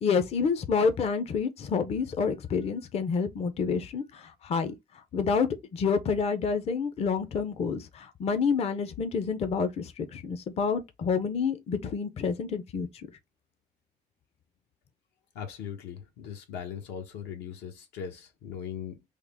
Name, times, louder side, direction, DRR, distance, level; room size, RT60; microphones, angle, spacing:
voice 1, 0.0-4.7 5.1-13.1, left 5 dB, 40° left, 0.5 m, -28 dB
voice 2, 15.3-19.0, left 8 dB, 85° left, 0.9 m, -39 dB
3.5 x 2.0 x 3.4 m
cardioid pair, 110°, 17 cm